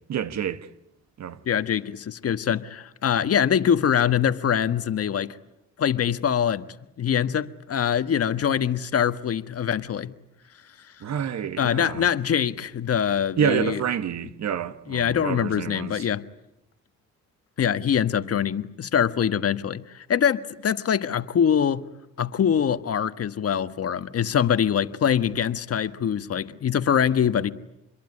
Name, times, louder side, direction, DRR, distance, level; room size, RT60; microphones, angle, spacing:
voice 1, 0.1-0.7 1.2-1.4 11.0-12.0 13.4-16.1, right 8 dB, 65° right, 1.6 m, -28 dB
voice 2, 1.4-5.4 5.8-6.7 7.0-10.1 11.6-13.8 14.9-16.2 17.6-21.8 22.2-27.5, left 8 dB, 50° left, 1.4 m, -24 dB
27.0 x 22.0 x 9.9 m
cardioid pair, 90°, 30 cm